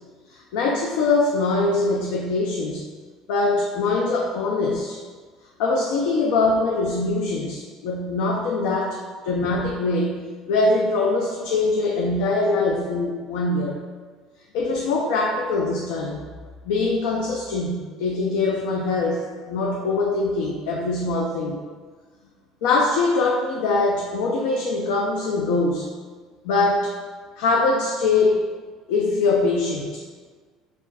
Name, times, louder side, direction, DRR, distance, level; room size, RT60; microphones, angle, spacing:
voice 1, 0.5-2.8 3.3-5.0 5.6-9.0 9.2-10.2 10.5-13.8 14.5-16.2 16.6-19.2 19.5-21.6 22.6-25.9 26.4-26.9 27.4-28.4 28.9-30.0, left 3 dB, 85° left, -1 dB, 0.4 m, -22 dB
7.1 x 2.4 x 2.3 m, 1.5 s
cardioid pair, 160°, 0 cm